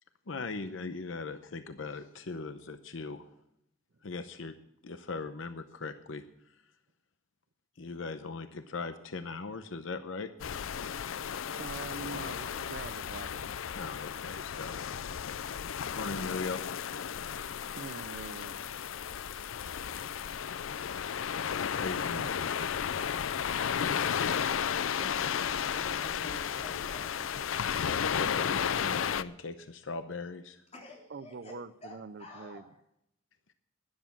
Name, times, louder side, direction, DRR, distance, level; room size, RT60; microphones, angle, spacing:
voice 1, 0.3-3.2 4.0-4.5 4.8-6.2 7.8-10.3 13.7-14.8 15.9-16.6 21.7-22.7 27.8-30.6, left 3 dB, 70° left, 0.8 m, -39 dB
sound 1, 10.4-29.2, left 8 dB, 85° left, 0.5 m, -33 dB
voice 2, 11.6-13.5 17.3-18.6 22.1-22.3 31.1-32.7, right 4 dB, 60° right, 0.6 m, -44 dB
voice 3, 25.0-27.5 30.7-31.6 31.8-32.7, left 1 dB, 35° left, 3.5 m, -49 dB
12.5 x 11.0 x 6.0 m
head